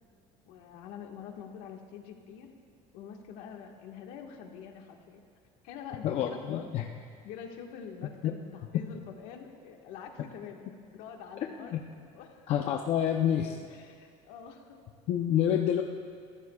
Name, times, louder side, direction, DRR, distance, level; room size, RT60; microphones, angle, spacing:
voice 1, 0.4-2.5 2.9-5.2 5.6-6.7 7.2-11.8 12.1-12.7 13.7-14.8, left 7 dB, 85° left, 2 dB, 1.6 m, -45 dB
voice 2, 6.0-6.8 8.2-8.3 11.6-11.8 12.5-13.6 15.1-15.8, left 10 dB, 50° left, 2 dB, 0.7 m, -28 dB
25.0 x 14.5 x 2.4 m, 2.1 s
cardioid pair, 150°, 14 cm